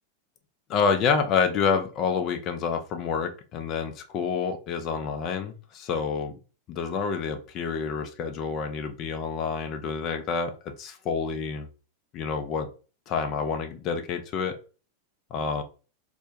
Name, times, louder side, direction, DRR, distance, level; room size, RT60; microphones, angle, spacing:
voice 1, 0.7-6.4 6.7-10.5 10.8-11.7 12.1-12.7 13.1-14.6 15.3-15.6, left 5 dB, 35° left, 6 dB, 0.5 m, -28 dB
2.1 x 2.1 x 2.7 m, 0.35 s
figure-of-eight pair, 90°, 0 cm